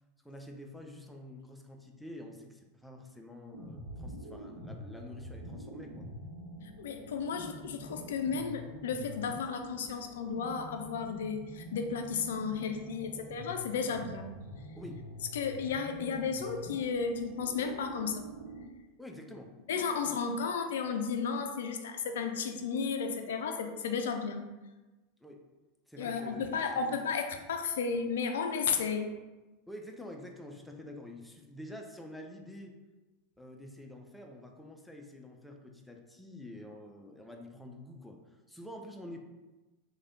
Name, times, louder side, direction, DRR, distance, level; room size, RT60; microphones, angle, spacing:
voice 1, 0.2-6.1 14.8-15.0 19.0-19.5 25.2-25.4 25.9-27.0 29.7-32.7 33.4-38.2 38.5-39.2, left 1 dB, 5° left, 2 dB, 0.5 m, -47 dB
sound 1, 3.5-18.6, equal, 90° right, 0.7 m, -46 dB
voice 2, 6.6-14.3 15.3-18.2 19.7-24.5 26.0-29.1, left 5 dB, 70° left, 5 dB, 0.4 m, -33 dB
3.3 x 2.3 x 3.8 m, 1.2 s
hypercardioid pair, 90°, 0 cm